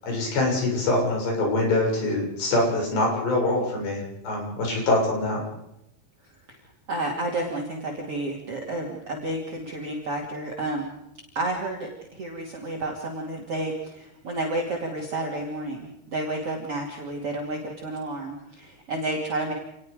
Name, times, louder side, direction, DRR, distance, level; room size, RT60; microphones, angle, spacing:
voice 1, 0.0-5.4, left 2 dB, 85° left, 0 dB, 9.2 m, -24 dB
voice 2, 6.2-6.6 6.9-10.9 11.3-19.5, right 2 dB, 40° right, -1 dB, 3.3 m, -31 dB
28.5 x 20.0 x 5.2 m, 0.86 s
omnidirectional pair, 4.7 m